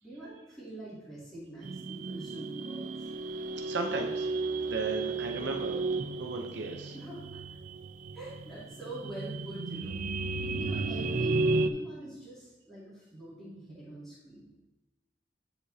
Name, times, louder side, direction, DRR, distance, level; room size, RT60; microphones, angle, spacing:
voice 1, 0.0-3.1 6.9-7.4 8.1-10.0 10.6-14.5, right 1 dB, 5° left, -11 dB, 2.5 m, -44 dB
sound 1, 1.6-11.7, right 3 dB, 50° right, 0.4 m, -33 dB
voice 2, 3.5-5.8 6.2-6.9, right 3 dB, 90° right, 3 dB, 0.7 m, -36 dB
10.0 x 6.0 x 2.8 m, 1.0 s
head